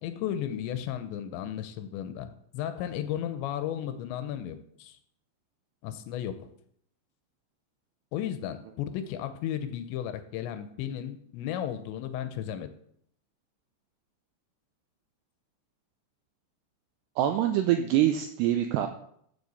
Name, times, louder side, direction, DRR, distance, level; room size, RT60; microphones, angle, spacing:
voice 1, 0.0-5.0 5.8-6.5 8.1-12.7, left 10 dB, 80° left, 10 dB, 2.8 m, -34 dB
voice 2, 17.2-18.9, right 11 dB, 85° right, 7 dB, 2.4 m, -25 dB
14.5 x 7.0 x 4.0 m, 0.68 s
omnidirectional pair, 5.4 m